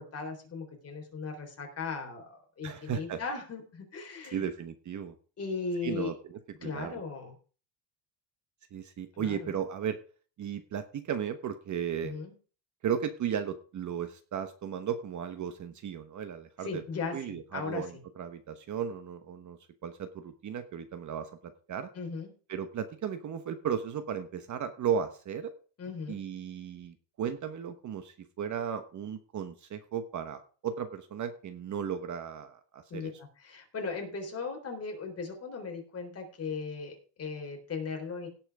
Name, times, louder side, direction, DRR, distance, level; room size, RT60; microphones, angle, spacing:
voice 1, 0.0-4.4 5.4-6.1 6.6-7.4 9.2-9.5 12.0-12.3 16.6-17.8 21.9-22.3 25.8-26.2 32.9-38.3, left 4 dB, 30° left, 2 dB, 3.8 m, -37 dB
voice 2, 2.6-3.2 4.3-5.1 5.8-7.0 8.7-10.0 10.4-12.2 12.8-16.8 17.1-21.9 22.5-25.5 26.1-33.1, right 8 dB, 35° right, 9 dB, 1.1 m, -35 dB
17.0 x 5.9 x 4.9 m, 0.38 s
cardioid pair, 145°, 48 cm